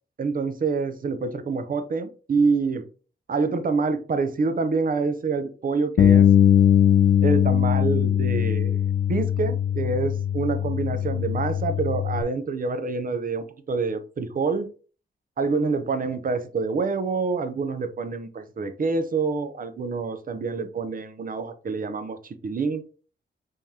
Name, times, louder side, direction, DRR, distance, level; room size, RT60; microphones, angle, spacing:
voice 1, 0.2-2.8 3.3-6.3 7.2-8.8 9.1-14.7 15.4-22.8, right 4 dB, 45° right, 0.6 m, -27 dB
Bass guitar, 6.0-12.2, left 9 dB, 60° left, 0.4 m, -20 dB
5.2 x 3.6 x 2.8 m
wide cardioid pair, 125°, 20 cm